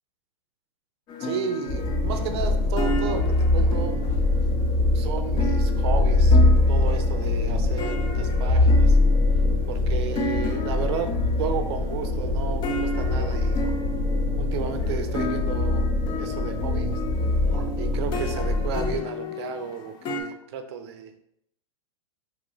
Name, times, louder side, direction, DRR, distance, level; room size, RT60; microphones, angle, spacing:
sound 1, 1.1-20.2, left 1 dB, 25° left, 0.4 m, -34 dB
voice 1, 1.2-4.0 4.9-6.4 6.7-9.0 9.7-11.1 11.4-13.7 14.4-15.9 16.2-16.9 17.5-21.1, right 7 dB, 55° right, 8 dB, 0.5 m, -33 dB
sound 2, 1.7-19.0, left 2 dB, 45° left, 0.7 m, -23 dB
3.0 x 2.5 x 3.0 m, 0.74 s
hypercardioid pair, 115°, 17 cm